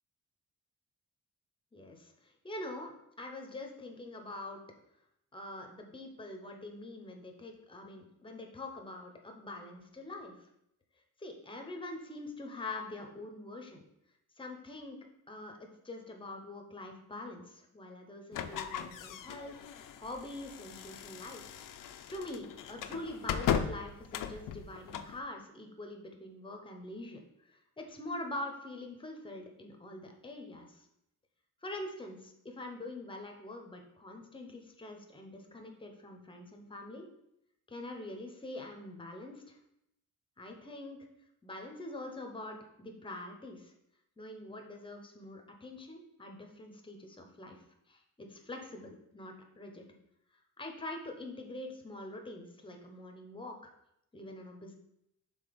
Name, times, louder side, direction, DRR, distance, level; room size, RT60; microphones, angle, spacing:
voice 1, 1.7-4.6 5.3-10.3 11.2-13.8 14.4-15.0 15.3-21.4 22.1-30.9 31.6-37.1 37.7-39.6 40.4-41.0 41.4-43.7 44.2-49.8 50.6-53.7 54.1-54.7, left 2 dB, 15° left, 3 dB, 0.8 m, -44 dB
sound 1, 18.3-25.2, left 8 dB, 85° left, 0.5 m, -38 dB
5.9 x 3.9 x 5.1 m, 0.79 s
wide cardioid pair, 175°, 31 cm